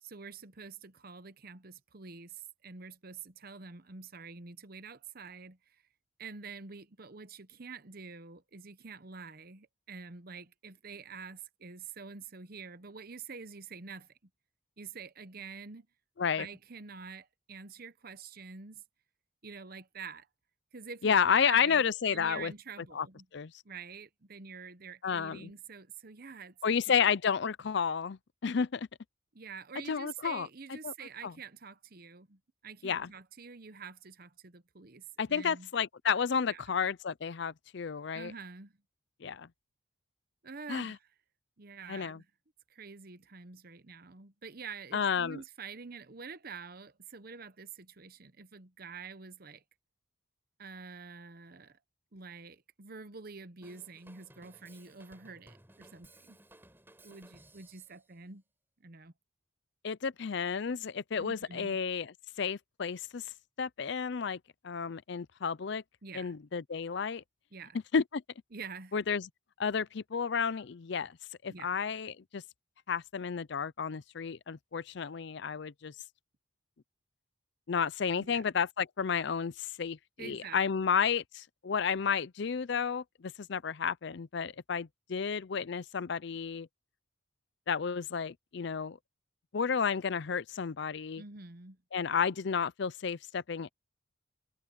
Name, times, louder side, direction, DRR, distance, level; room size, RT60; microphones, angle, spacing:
voice 1, 0.0-5.8 6.2-14.1 14.8-15.9 16.4-18.8 19.4-20.3 20.7-23.3 23.6-26.8 29.3-35.7 36.5-36.8 38.1-38.7 40.4-41.0 41.6-42.3 42.7-49.6 50.6-51.8 52.1-56.4 57.0-58.4 58.8-59.1 61.2-61.8 66.0-66.3 67.5-67.8 68.5-68.9 71.5-71.7 78.2-78.4 80.2-80.8 91.2-91.8, right 5 dB, 45° right, 0.9 m, -47 dB
voice 2, 21.0-22.5 22.9-23.1 23.3-23.5 25.0-25.5 26.6-28.9 29.9-30.5 30.8-30.9 31.2-31.3 32.8-33.1 35.2-38.3 39.2-39.5 40.7-41.0 41.9-42.2 44.9-45.4 59.8-63.3 63.6-65.8 66.1-67.2 67.9-68.2 68.9-69.3 69.6-71.2 71.4-72.4 72.9-75.9 77.7-86.7 87.7-89.0 89.5-91.2 91.9-93.7, left 6 dB, 55° left, 0.5 m, -31 dB
Drum kit / Drum, 53.6-58.0, right 1 dB, 10° right, 5.1 m, -59 dB
head